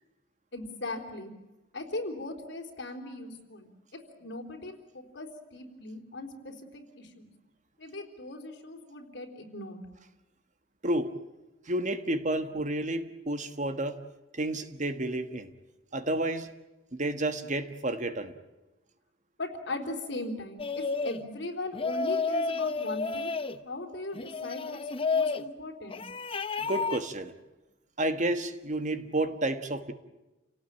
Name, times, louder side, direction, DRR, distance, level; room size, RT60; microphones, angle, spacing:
voice 1, 0.5-1.3 1.7-7.3 7.8-9.8 19.4-23.3 23.6-26.0, left 2 dB, 65° left, 4 dB, 4.0 m, -39 dB
voice 2, 11.7-14.0 14.3-15.5 15.9-16.5 16.9-18.3 26.6-27.3 28.0-29.9, right 1 dB, 40° right, 9 dB, 1.5 m, -30 dB
sound 1, 20.6-21.2 21.7-23.6 24.2-25.4 25.9-27.0, left 4 dB, 30° left, 0.9 m, -31 dB
29.0 x 18.5 x 8.9 m, 1.0 s
head